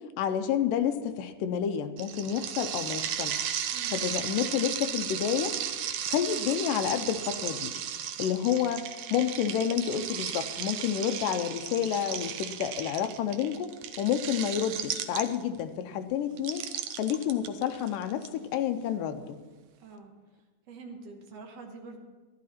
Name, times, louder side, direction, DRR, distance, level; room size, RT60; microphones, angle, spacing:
voice 1, 0.2-3.5 3.9-5.5 6.1-7.7 8.2-8.9 9.1-13.7 14.0-16.6 17.0-19.4, left 9 dB, 85° left, 8 dB, 2.3 m, -29 dB
sound 1, 2.0-15.6 16.4-18.3, right 9 dB, 85° right, 1.4 m, -35 dB
voice 2, 3.7-4.1 19.8-20.1 20.7-22.0, right 4 dB, 60° right, 3 dB, 2.0 m, -45 dB
13.5 x 11.5 x 4.3 m, 1.3 s
omnidirectional pair, 3.8 m